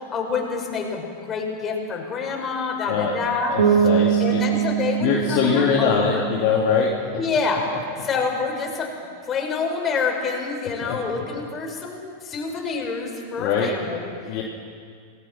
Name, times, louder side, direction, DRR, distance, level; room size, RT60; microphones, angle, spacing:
voice 1, 0.0-3.9 4.2-6.3 7.2-7.7 8.0-8.9 9.3-14.4, left 4 dB, 25° left, 1 dB, 5.6 m, -27 dB
voice 2, 3.5-4.4 5.0-6.9 10.8-11.0 13.4-13.7 14.2-14.4, left 6 dB, 40° left, -2 dB, 2.7 m, -22 dB
Bass guitar, 3.6-7.4, right 8 dB, 65° right, 5.7 m, -23 dB
28.5 x 19.5 x 6.0 m, 2.1 s
figure-of-eight pair, 90°, 0 cm